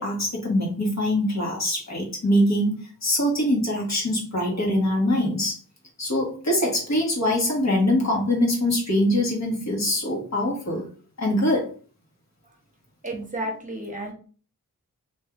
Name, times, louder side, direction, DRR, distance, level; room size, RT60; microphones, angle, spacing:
voice 1, 0.0-5.6 6.0-10.9 11.2-11.7, left 1 dB, 55° left, -1 dB, 1.4 m, -23 dB
voice 2, 13.0-14.1, right 1 dB, 25° right, 0 dB, 1.0 m, -31 dB
2.7 x 2.6 x 3.5 m, 0.40 s
cardioid pair, 55°, 33 cm